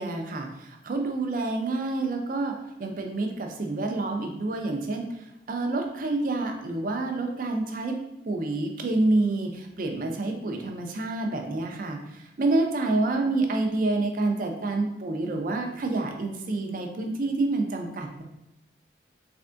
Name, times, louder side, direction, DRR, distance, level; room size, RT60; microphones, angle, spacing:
voice 1, 0.0-8.0 8.3-18.2, right 2 dB, 45° right, 3 dB, 0.5 m, -28 dB
3.4 x 3.3 x 2.5 m, 0.88 s
head